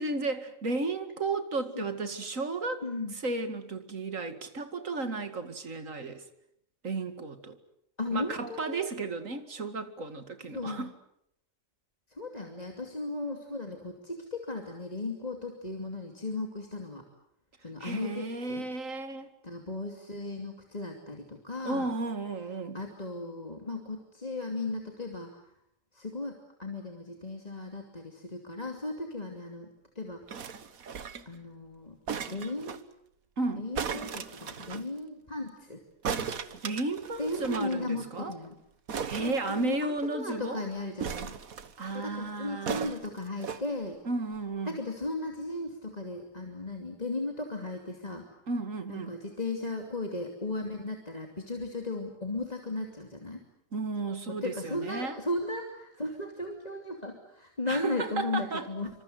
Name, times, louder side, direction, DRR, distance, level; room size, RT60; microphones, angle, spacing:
voice 1, 0.0-2.8 3.1-6.2 6.8-7.6 8.1-10.9 17.8-19.3 21.6-22.8 33.4-33.7 36.6-38.4 39.1-40.6 41.8-42.9 44.0-44.8 48.5-49.2 53.7-55.2 57.7-58.7, right 3 dB, 70° right, 9 dB, 2.6 m, -33 dB
voice 2, 2.8-3.1 8.0-8.9 10.5-10.9 12.1-17.0 17.6-18.6 19.4-21.9 22.7-25.4 25.9-30.2 31.3-32.0 32.3-32.8 33.6-35.8 37.2-38.6 39.2-41.3 41.9-44.0 44.7-48.3 48.9-53.4 54.3-58.9, left 2 dB, 30° left, 2 dB, 2.8 m, -36 dB
sound 1, 30.3-31.4 32.1-32.8 33.7-34.9 36.0-37.7 38.0-38.1 38.3-38.5 38.9-40.1 41.0-41.9 42.7-43.6 44.4-44.5, right 6 dB, 85° right, 1.8 m, -37 dB
27.0 x 26.0 x 7.9 m, 0.74 s
omnidirectional pair, 1.4 m